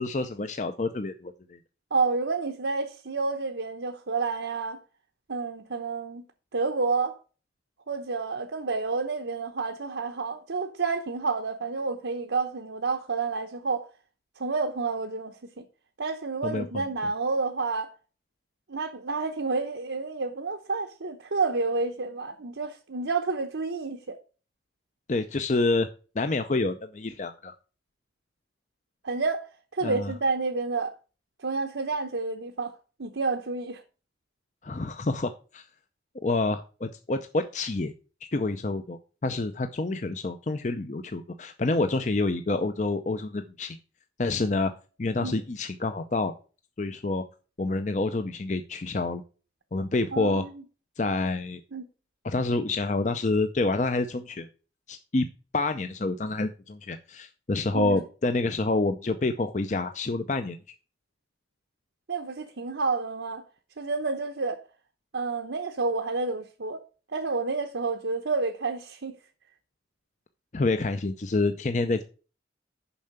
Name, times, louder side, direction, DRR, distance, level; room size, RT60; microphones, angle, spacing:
voice 1, 0.0-1.6 16.4-16.6 25.1-25.9 26.2-27.5 29.8-30.1 34.6-35.6 36.2-37.9 38.2-43.8 44.2-44.7 45.0-46.3 46.8-47.2 47.6-49.2 49.7-50.4 51.0-51.6 52.2-54.5 54.9-55.3 55.5-60.6 70.5-72.0, left 2 dB, 40° left, 0.5 m, -28 dB
voice 2, 1.9-4.8 5.3-6.2 6.5-7.2 7.9-13.8 14.4-15.6 16.0-17.9 18.7-24.2 29.0-30.9 31.4-33.8 45.2-45.4 50.1-50.6 51.7-51.9 57.7-58.0 62.1-63.4 63.8-64.6 65.1-66.8 67.1-69.2, right 4 dB, 90° right, 0.9 m, -29 dB
7.1 x 5.6 x 6.5 m
head